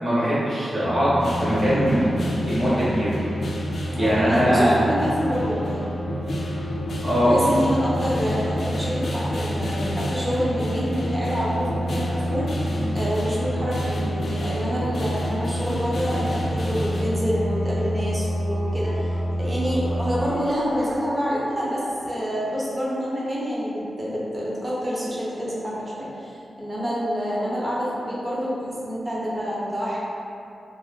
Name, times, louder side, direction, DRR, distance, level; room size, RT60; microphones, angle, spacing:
voice 1, 0.0-2.1 2.4-3.2 3.9-4.8 7.0-7.3, equal, 45° right, -11 dB, 1.1 m, -21 dB
sound 1, 0.8-20.2, equal, 85° right, 1.4 m, -29 dB
sound 2, 1.2-21.0, equal, 60° left, 0.3 m, -32 dB
voice 2, 3.9-6.2 7.2-12.7 12.9-30.0, equal, 25° right, -7 dB, 0.6 m, -27 dB
2.5 x 2.1 x 3.3 m, 2.7 s
wide cardioid pair, 130°, 0 cm